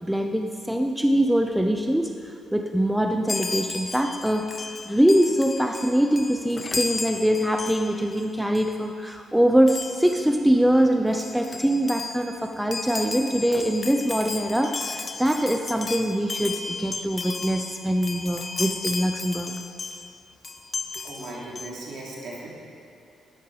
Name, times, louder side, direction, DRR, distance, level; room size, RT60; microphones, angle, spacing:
voice 1, 0.0-4.5 4.8-19.5, equal, 5° right, 4 dB, 0.7 m, -23 dB
Chime, 3.3-8.2 8.5-8.8 9.7-10.3 10.8-10.9 11.1-20.1 20.4-21.7, left 4 dB, 35° left, 0.7 m, -34 dB
voice 2, 21.0-22.5, right 2 dB, 60° right, -4 dB, 3.4 m, -37 dB
13.0 x 10.5 x 5.0 m, 2.6 s
cardioid pair, 90°, 0 cm